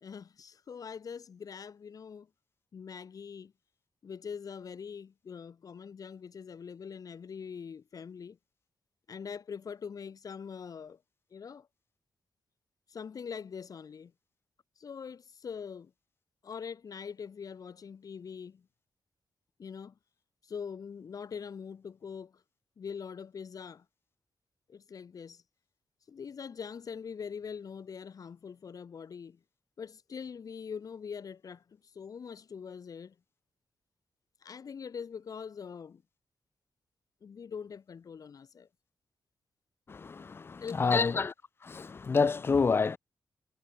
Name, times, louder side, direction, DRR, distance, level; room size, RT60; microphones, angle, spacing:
voice 1, 0.0-2.3 2.7-3.5 4.0-8.4 9.1-11.0 11.3-11.7 12.9-14.1 14.8-15.9 16.4-18.6 19.6-19.9 20.4-22.4 22.8-23.8 24.7-25.4 26.1-29.4 29.8-33.1 34.4-36.0 37.2-38.7 40.6-41.2, left 6 dB, 55° left, 3.3 m, -43 dB
voice 2, 39.9-41.3 41.6-43.0, left 4 dB, 30° left, 0.6 m, -28 dB
wide cardioid pair, 130°, 7 cm